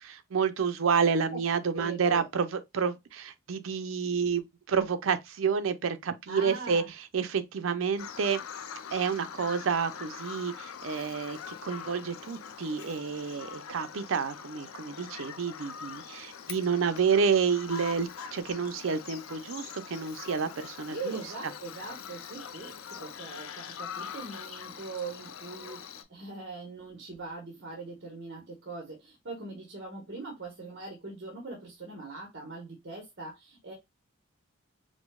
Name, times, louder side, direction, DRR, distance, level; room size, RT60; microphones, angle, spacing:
voice 1, 0.0-6.8 7.1-8.4 8.9-21.2, right 6 dB, 75° right, 0.5 m, -29 dB
voice 2, 1.7-2.3 6.3-6.9 20.9-33.7, right 3 dB, 55° right, 1.0 m, -41 dB
Bird vocalization bird call bird song, 8.0-26.0, left 7 dB, 85° left, 0.4 m, -43 dB
4.9 x 2.0 x 2.3 m
head